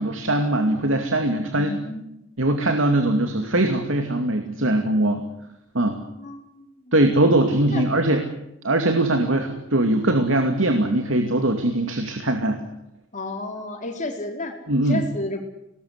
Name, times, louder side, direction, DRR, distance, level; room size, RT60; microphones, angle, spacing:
voice 1, 0.0-1.7 2.4-5.2 5.7-6.0 6.9-8.2 8.6-12.6 14.7-15.0, right 1 dB, 90° right, 5 dB, 2.5 m, -21 dB
voice 2, 1.5-2.1 6.1-7.1 7.7-7.8 13.1-14.6 14.8-15.4, left 2 dB, 40° left, 3 dB, 4.6 m, -32 dB
24.0 x 20.0 x 9.7 m, 0.84 s
head